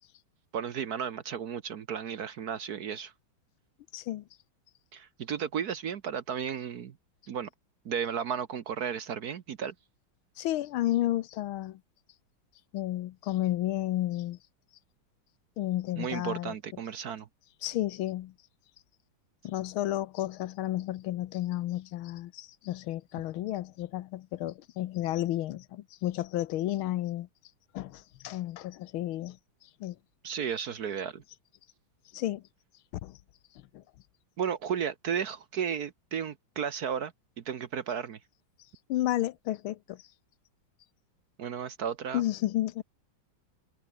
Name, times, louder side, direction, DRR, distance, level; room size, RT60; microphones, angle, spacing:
voice 1, 0.5-3.1 4.9-7.0 7.3-7.5 7.8-9.7 15.9-17.3 30.2-31.2 34.4-38.2 41.4-42.2, right 7 dB, 55° right, 1.2 m, -34 dB
voice 2, 3.9-4.2 10.4-11.8 12.7-14.4 15.6-16.5 17.6-18.3 19.4-27.3 27.7-29.4 29.8-30.0 32.1-32.4 33.0-33.2 33.7-33.8 38.9-40.0 42.1-42.8, left 14 dB, 80° left, 1.6 m, -32 dB
omnidirectional pair, 2.3 m